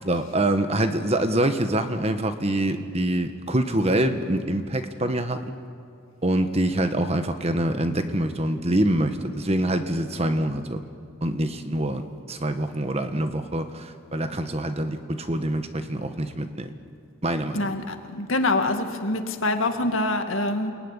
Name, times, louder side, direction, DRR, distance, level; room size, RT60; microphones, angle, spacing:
voice 1, 0.0-5.6 6.2-10.8 11.2-16.7 17.2-17.7, right 1 dB, 30° right, 8 dB, 1.4 m, -25 dB
voice 2, 17.5-20.7, left 2 dB, 70° left, 5 dB, 2.2 m, -25 dB
29.0 x 19.0 x 9.9 m, 2.3 s
head